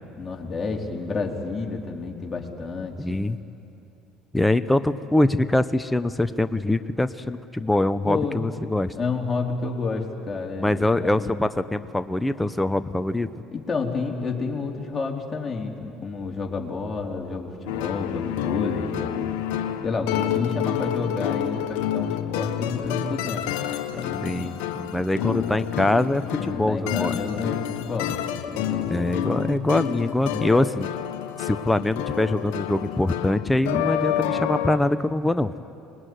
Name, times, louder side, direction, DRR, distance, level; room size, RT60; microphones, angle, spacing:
voice 1, 0.2-3.1 8.0-8.4 9.0-11.3 13.5-19.3 19.8-23.5 23.9-24.3 25.2-25.5 26.4-28.2 28.5-28.9, left 4 dB, 25° left, 0 dB, 4.0 m, -30 dB
voice 2, 3.0-3.4 4.3-8.9 10.6-13.3 24.2-27.2 28.9-30.9 31.4-35.5, left 1 dB, 10° left, 11 dB, 1.0 m, -23 dB
sound 1, 17.7-34.8, left 11 dB, 75° left, 1.3 m, -29 dB
25.0 x 21.0 x 9.6 m, 2.7 s
hypercardioid pair, 70°, 0 cm